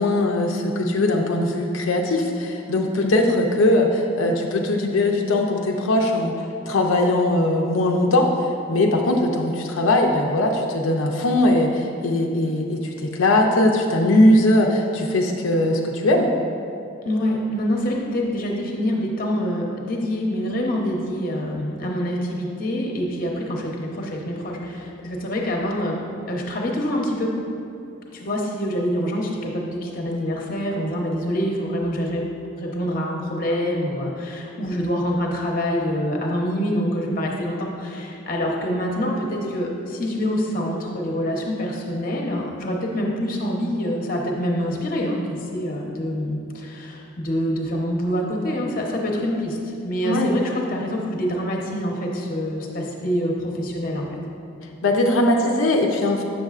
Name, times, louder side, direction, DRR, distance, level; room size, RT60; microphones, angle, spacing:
voice 1, 0.0-6.3 6.7-8.3 8.7-16.3 50.0-50.3 54.8-56.2, left 1 dB, 90° left, 1 dB, 0.5 m, -20 dB
voice 2, 17.0-26.0 26.3-27.3 28.1-32.3 32.6-45.2 45.5-54.2, equal, 45° left, -1 dB, 0.8 m, -26 dB
7.6 x 6.5 x 2.4 m, 2.6 s
head